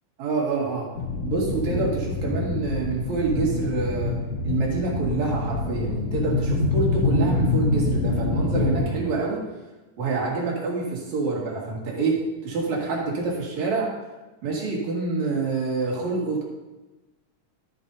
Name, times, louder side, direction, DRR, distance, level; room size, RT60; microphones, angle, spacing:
voice 1, 0.2-0.9 1.2-4.2 4.4-9.4 10.0-13.9 14.4-16.4, right 4 dB, 70° right, -3 dB, 3.3 m, -27 dB
sound 1, 1.0-8.8, left 3 dB, 90° left, 2.8 m, -25 dB
12.5 x 9.3 x 2.7 m, 1.1 s
omnidirectional pair, 3.5 m